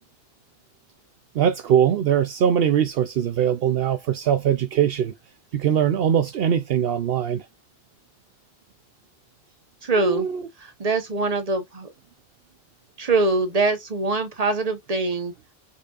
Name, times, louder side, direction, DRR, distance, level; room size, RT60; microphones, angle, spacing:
voice 1, 1.3-5.1 5.5-7.4 10.0-10.4, right 9 dB, 70° right, 0.8 m, -21 dB
voice 2, 9.8-10.3 10.6-11.9 13.0-15.3, right 3 dB, 40° right, 1.2 m, -23 dB
5.1 x 4.3 x 2.4 m
omnidirectional pair, 1.0 m